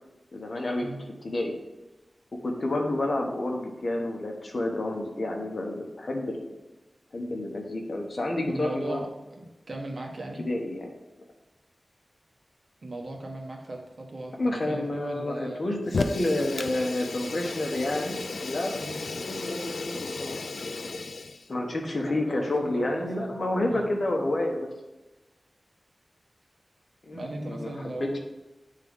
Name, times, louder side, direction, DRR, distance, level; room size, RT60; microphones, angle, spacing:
voice 1, 0.3-0.9 1.2-1.6 2.4-6.4 7.1-9.0 10.4-10.9 14.4-18.8 19.3-20.4 20.7-21.0 21.5-24.7 27.1-27.7 28.0-28.2, left 1 dB, 55° left, 2 dB, 1.1 m, -29 dB
voice 2, 8.4-10.5 12.8-15.6 18.8-19.1 21.8-23.3 23.6-23.9 27.1-28.2, right 2 dB, 60° right, 0 dB, 1.3 m, -38 dB
Fire, 15.9-21.5, left 3 dB, 80° left, 0.4 m, -34 dB
9.5 x 3.7 x 3.6 m, 1.1 s
wide cardioid pair, 95°, 0 cm